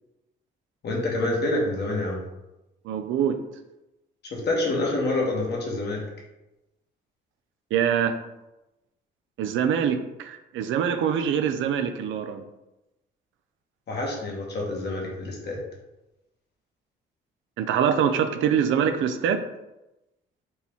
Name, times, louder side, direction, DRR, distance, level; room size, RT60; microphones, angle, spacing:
voice 1, 0.8-2.2 4.2-6.0 13.9-15.6, left 2 dB, 55° left, -2 dB, 1.4 m, -27 dB
voice 2, 2.8-3.4 7.7-8.2 9.4-12.4 17.6-19.4, right 8 dB, 80° right, 8 dB, 0.5 m, -24 dB
4.3 x 2.9 x 3.5 m, 0.96 s
cardioid pair, 90°, 20 cm